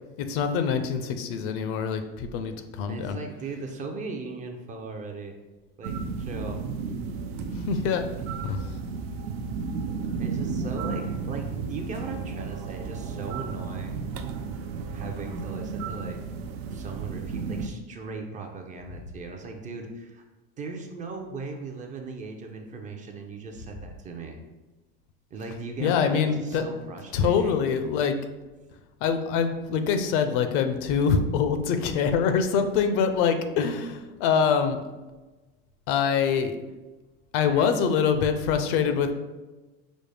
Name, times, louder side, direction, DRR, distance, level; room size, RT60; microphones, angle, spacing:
voice 1, 0.2-3.2 7.7-8.1 8.4-8.6 25.8-26.6 27.1-28.1 29.0-34.8 35.9-36.6 37.3-39.1, left 6 dB, 60° left, 8 dB, 0.5 m, -24 dB
voice 2, 2.9-5.3 5.8-6.6 10.2-14.1 14.9-16.2 16.7-20.2 20.6-24.4 25.3-27.5 37.4-37.7, right 3 dB, 25° right, 3 dB, 0.4 m, -38 dB
sound 1, 5.8-17.7, right 5 dB, 80° right, 0.5 m, -33 dB
5.1 x 2.0 x 3.3 m, 1.2 s
supercardioid pair, 130°, 30 cm